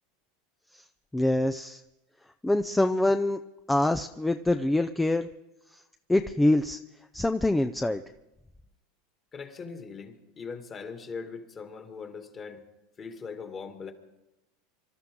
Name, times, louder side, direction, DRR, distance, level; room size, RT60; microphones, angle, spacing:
voice 1, 1.1-1.8 2.4-3.4 3.7-5.3 6.1-6.8 7.1-8.0, left 1 dB, 5° left, 8 dB, 0.6 m, -25 dB
voice 2, 9.3-12.6 13.0-13.9, left 5 dB, 30° left, 5 dB, 2.3 m, -40 dB
25.5 x 13.0 x 3.8 m, 0.93 s
supercardioid pair, 110°, 0 cm